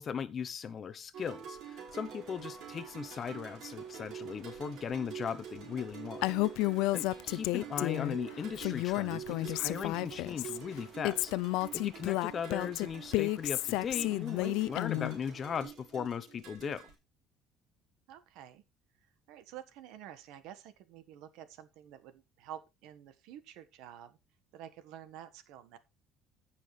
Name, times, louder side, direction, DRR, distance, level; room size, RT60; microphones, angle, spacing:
voice 1, 0.0-6.3 6.6-11.3 11.7-16.8, left 7 dB, 30° left, 0.7 m, -38 dB
sound 1, 1.1-16.9, right 8 dB, 55° right, 4.6 m, -47 dB
Water, 1.9-15.7, right 3 dB, 30° right, 3.2 m, -60 dB
Female speech woman speaking, 6.2-8.2 8.6-10.6 11.0-15.2, left 19 dB, 85° left, 0.4 m, -31 dB
voice 2, 18.1-18.6 19.3-24.2 24.5-25.8, right 10 dB, 75° right, 1.2 m, -50 dB
16.0 x 5.7 x 3.2 m
cardioid pair, 165°, 0 cm